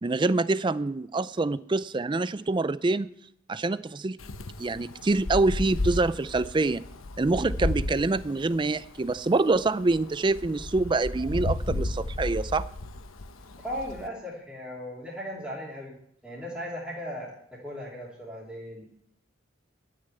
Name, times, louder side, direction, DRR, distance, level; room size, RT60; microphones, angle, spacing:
voice 1, 0.0-3.1 3.5-4.2 4.6-6.8 7.2-12.6, right 3 dB, 25° right, 16 dB, 0.4 m, -26 dB
Wind, 4.2-14.1, left 2 dB, 85° left, 1.0 m, -34 dB
voice 2, 13.5-16.0 16.2-18.8, equal, 5° right, -8 dB, 3.0 m, -37 dB
12.5 x 6.6 x 8.0 m, 0.72 s
head